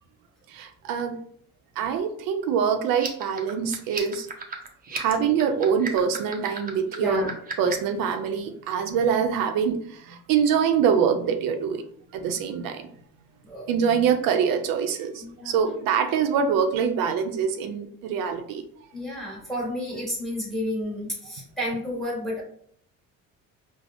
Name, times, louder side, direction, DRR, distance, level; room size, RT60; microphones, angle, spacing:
voice 1, 0.5-1.2 1.8-4.3 4.9-7.3 7.6-11.8 12.1-12.9 13.7-18.6, right 7 dB, 90° right, 6 dB, 0.5 m, -24 dB
sound 1, 2.9-7.9, right 5 dB, 25° right, 0.5 m, -36 dB
voice 2, 6.9-7.3 13.4-13.7 15.2-15.6 18.9-22.4, equal, ahead, -4 dB, 1.2 m, -31 dB
4.8 x 2.0 x 2.5 m, 0.63 s
cardioid pair, 135°, 33 cm